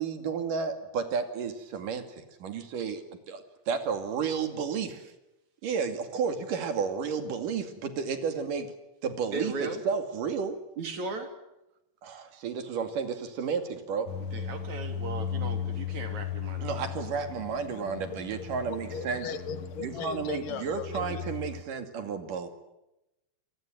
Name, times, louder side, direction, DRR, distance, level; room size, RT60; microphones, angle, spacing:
voice 1, 0.0-5.1 5.6-8.7 9.0-10.6 12.0-14.1 16.6-19.3 19.8-22.5, right 6 dB, 80° right, 8 dB, 4.0 m, -32 dB
voice 2, 9.3-9.8 10.8-11.3 14.3-17.2, right 3 dB, 60° right, 6 dB, 4.5 m, -37 dB
sound 1, 14.1-21.6, left 8 dB, 55° left, 1.8 m, -37 dB
voice 3, 18.4-21.2, left 6 dB, 80° left, 11 dB, 3.4 m, -38 dB
28.0 x 22.0 x 9.1 m, 0.92 s
omnidirectional pair, 3.7 m